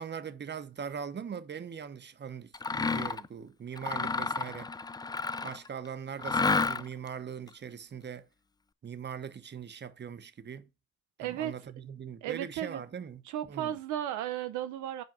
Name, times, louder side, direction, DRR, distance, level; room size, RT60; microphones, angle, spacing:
voice 1, 0.0-4.7 5.4-8.3 8.8-10.7 11.2-13.2 13.5-13.7, right 7 dB, 35° right, 0.9 m, -41 dB
Mechanisms, 2.5-3.3 3.8-5.7 6.2-7.1, left 4 dB, 15° left, 0.4 m, -30 dB
voice 2, 11.2-11.5 12.2-12.8 13.2-15.0, right 11 dB, 80° right, 0.7 m, -34 dB
5.2 x 4.5 x 5.9 m
supercardioid pair, 55°, 30 cm